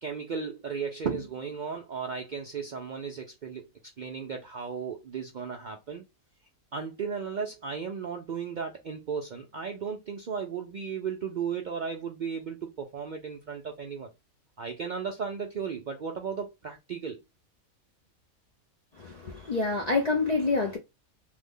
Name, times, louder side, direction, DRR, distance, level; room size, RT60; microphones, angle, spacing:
voice 1, 0.0-3.6 4.0-6.0 6.7-14.1 14.6-17.2, right 6 dB, 75° right, 0.4 m, -35 dB
voice 2, 19.0-20.8, left 3 dB, 65° left, 0.4 m, -27 dB
3.3 x 2.1 x 3.6 m
omnidirectional pair, 1.4 m